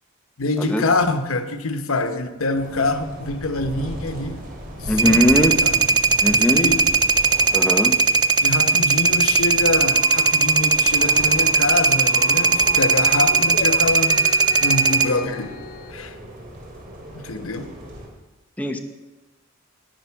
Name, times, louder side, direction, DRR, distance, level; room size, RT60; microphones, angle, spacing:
voice 1, 0.4-4.4 4.8-6.9 8.4-14.3 14.6-15.6 15.9-16.1 17.1-17.7, left 2 dB, 80° left, 1.0 m, -25 dB
sound 1, 2.5-18.1, equal, 40° right, 2.5 m, -37 dB
voice 2, 4.9-5.6 6.2-6.7 7.5-8.0 18.6-18.8, left 1 dB, 5° left, 0.9 m, -20 dB
sound 2, 5.0-15.1, right 4 dB, 20° right, 0.4 m, -18 dB
sound 3, 9.9-15.9, left 4 dB, 45° left, 0.7 m, -37 dB
10.5 x 10.5 x 5.8 m
head